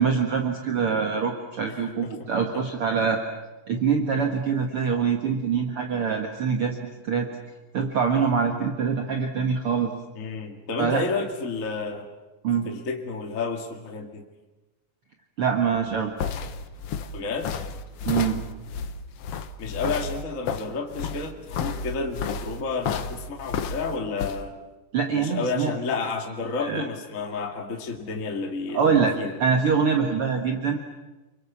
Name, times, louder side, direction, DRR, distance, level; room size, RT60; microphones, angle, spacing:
voice 1, 0.0-3.2 3.7-7.3 7.7-9.9 10.8-11.1 12.4-12.7 15.4-16.1 18.1-18.4 24.9-25.7 26.6-26.8 28.7-29.1 29.4-30.8, right 6 dB, 50° right, 3 dB, 2.3 m, -24 dB
voice 2, 10.1-12.1 12.6-14.2 17.1-17.5 19.6-24.5 25.1-29.4, left 4 dB, 30° left, 3 dB, 2.0 m, -31 dB
sound 1, 15.7-24.4, left 6 dB, 60° left, 1.7 m, -32 dB
29.5 x 23.0 x 7.3 m, 1.1 s
omnidirectional pair, 3.8 m